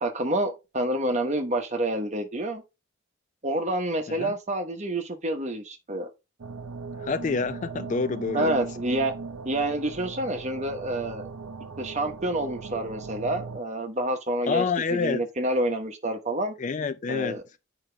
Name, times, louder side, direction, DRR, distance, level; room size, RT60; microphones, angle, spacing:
voice 1, 0.0-2.6 3.4-6.1 8.3-9.1 9.4-11.3 11.8-14.7 14.9-16.5 17.1-17.4, right 1 dB, 35° right, 1.1 m, -28 dB
sound 1, 6.4-13.6, right 4 dB, 80° right, 0.7 m, -38 dB
voice 2, 7.0-8.5 14.5-15.2 16.6-17.4, left 5 dB, 35° left, 0.3 m, -27 dB
8.9 x 4.9 x 3.4 m
head